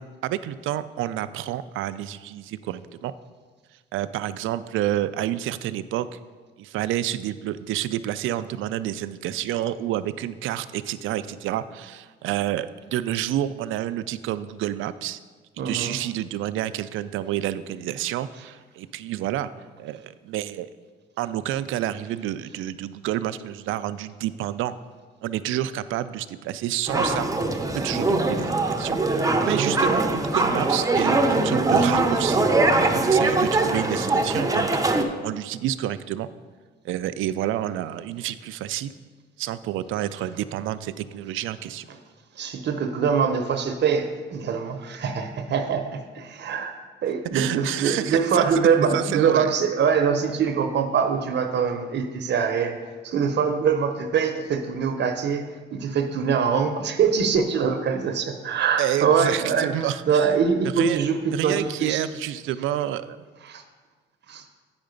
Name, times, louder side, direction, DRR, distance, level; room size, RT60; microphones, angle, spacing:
voice 1, 0.0-3.1 3.9-6.2 6.6-15.2 15.6-19.5 19.8-20.7 21.2-24.8 25.2-27.3 27.6-32.5 32.9-36.3 36.8-38.9 39.4-41.9 47.3-48.5 48.9-49.5 58.8-60.2 60.8-61.0 61.3-63.2, right 12 dB, 85° right, 13 dB, 0.4 m, -29 dB
voice 2, 15.6-16.0 29.5-29.8 42.3-52.8 53.0-55.4 55.7-59.7 60.1-62.0 63.4-63.6 64.3-64.4, right 6 dB, 60° right, 7 dB, 0.7 m, -23 dB
sound 1, 26.9-35.0, right 2 dB, 15° right, 0.7 m, -22 dB
8.7 x 5.6 x 5.2 m, 1.4 s
cardioid pair, 90°, 20 cm